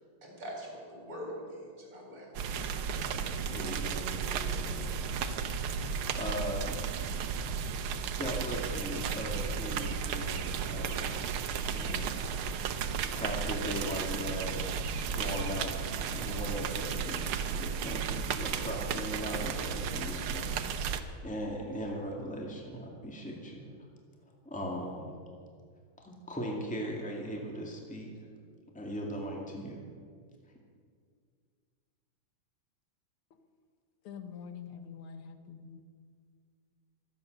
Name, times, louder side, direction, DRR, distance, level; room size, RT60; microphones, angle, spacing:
voice 1, 0.2-3.1, equal, 40° right, -1 dB, 4.5 m, -44 dB
sound 1, 2.3-21.0, right 6 dB, 85° right, 1.7 m, -34 dB
voice 2, 3.5-5.1 6.1-6.9 8.2-11.2 11.6-12.2 13.0-14.7 15.1-15.8 16.1-20.6 20.8-23.7 24.4-25.2 26.0-28.3 28.7-29.8, equal, 5° left, -1 dB, 2.1 m, -39 dB
voice 3, 34.0-35.8, left 7 dB, 90° left, 7 dB, 2.1 m, -45 dB
23.5 x 9.1 x 6.6 m, 2.1 s
omnidirectional pair, 2.3 m